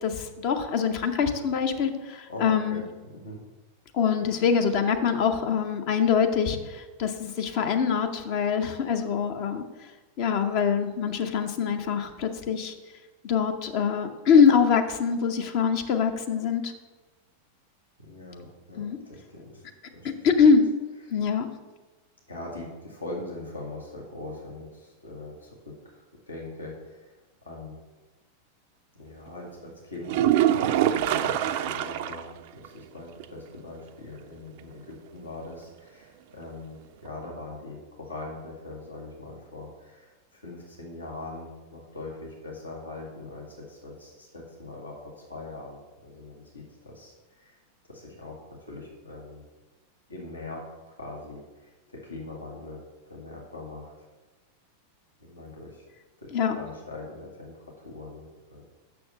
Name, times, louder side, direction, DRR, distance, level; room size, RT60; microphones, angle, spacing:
voice 1, 0.0-2.8 3.9-9.6 10.2-12.7 13.2-16.7 18.8-19.0 20.2-20.6 21.1-21.5 56.3-56.5, left 6 dB, 45° left, 6 dB, 0.8 m, -24 dB
voice 2, 2.3-3.5 18.0-19.6 19.9-20.1 21.0-21.1 22.3-27.8 28.9-47.6 47.9-49.4 50.1-54.1 55.2-55.8 56.2-58.6, left 2 dB, 80° left, -2 dB, 1.8 m, -42 dB
sound 1, 30.0-32.3 32.6-32.7 33.2-33.3 37.1-37.2, right 11 dB, 50° right, 0.4 m, -24 dB
6.8 x 6.5 x 6.7 m, 1.2 s
figure-of-eight pair, 90°, 0 cm